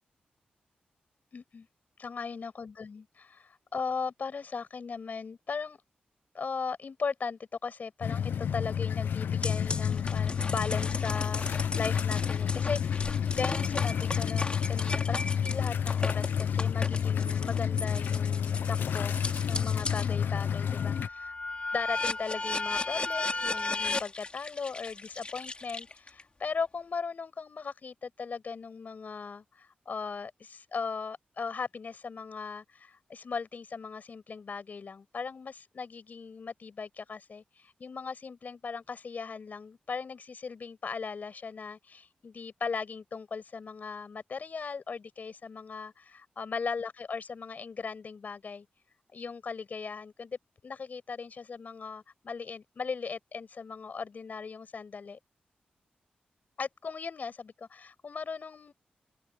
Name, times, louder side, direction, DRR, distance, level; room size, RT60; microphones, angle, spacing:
voice 1, 1.3-1.7 2.0-5.8 6.3-19.1 19.5-21.4 21.7-48.7 49.1-55.2 56.6-58.7, left 5 dB, 60° left, 7.2 m, -38 dB
sound 1, 8.0-21.1, left 8 dB, 85° left, 0.7 m, -30 dB
sound 2, 9.4-20.1 20.6-26.2, left 3 dB, 35° left, 2.6 m, -36 dB
open air
cardioid pair, 70°, 3 cm